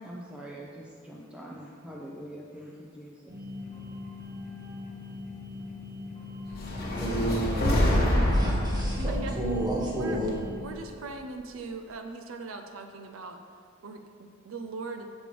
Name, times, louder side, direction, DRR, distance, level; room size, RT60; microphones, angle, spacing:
voice 1, 0.0-3.4, equal, 5° right, -3 dB, 0.6 m, -43 dB
sound 1, 3.3-10.6, left 3 dB, 50° right, 1.2 m, -41 dB
sound 2, 6.5-10.8, left 1 dB, 50° left, 1.4 m, -27 dB
voice 2, 6.9-10.3, right 1 dB, 20° right, -4 dB, 1.5 m, -31 dB
voice 3, 9.0-9.4 10.0-10.2 10.6-13.4 13.8-15.1, right 3 dB, 85° right, 5 dB, 0.5 m, -40 dB
6.8 x 5.1 x 5.0 m, 2.2 s
head